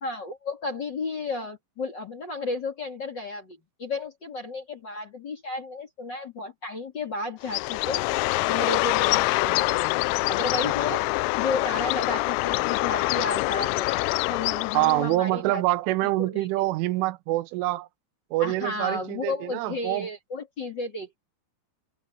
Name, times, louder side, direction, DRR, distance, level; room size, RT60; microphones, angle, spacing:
voice 1, 0.0-8.0 8.5-9.9 10.3-11.0 11.4-15.6 16.2-16.6 18.4-21.2, left 3 dB, 35° left, 2.0 m, -33 dB
Bird, 7.4-15.2, left 22 dB, 90° left, 3.2 m, -25 dB
voice 2, 14.7-17.9 18.3-20.1, right 18 dB, 80° right, 3.3 m, -25 dB
omnidirectional pair, 5.8 m